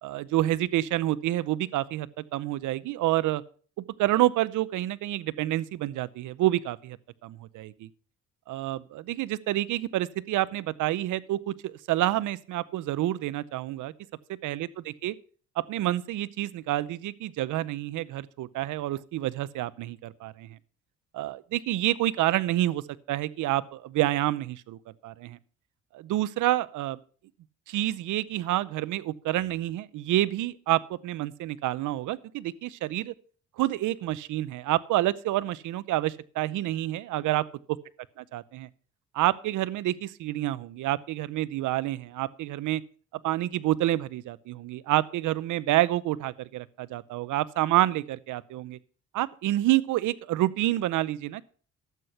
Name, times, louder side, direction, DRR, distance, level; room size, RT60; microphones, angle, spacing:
voice 1, 0.0-3.4 3.8-7.0 7.2-7.9 8.5-13.9 14.4-14.7 15.0-15.1 15.6-20.6 21.1-22.8 23.1-25.4 25.9-27.0 27.7-33.1 33.6-37.4 38.3-38.7 39.1-42.8 43.2-48.8 49.1-51.4, right 15 dB, 80° right, 0.7 m, -28 dB
12.0 x 8.2 x 5.6 m
cardioid pair, 90°, 30 cm